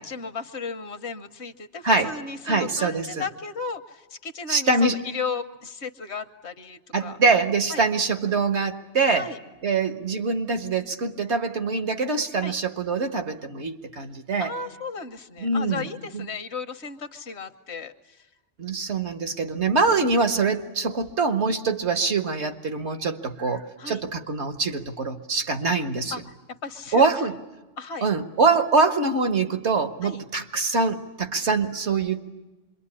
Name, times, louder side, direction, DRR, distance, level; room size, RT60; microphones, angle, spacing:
voice 1, 0.0-7.2 7.7-7.8 9.1-9.4 12.4-12.6 14.4-18.3 23.8-24.0 26.1-26.2 26.5-27.1 27.8-28.1 30.0-30.2, left 4 dB, 65° left, 9 dB, 1.4 m, -35 dB
voice 2, 1.8-2.2 2.5-3.2 4.5-5.0 6.9-9.3 9.6-14.5 15.4-15.9 16.1-16.2 18.6-26.2 26.9-27.4 28.0-32.2, right 4 dB, 70° right, 8 dB, 1.6 m, -24 dB
26.0 x 22.5 x 9.7 m, 1.1 s
omnidirectional pair, 1.2 m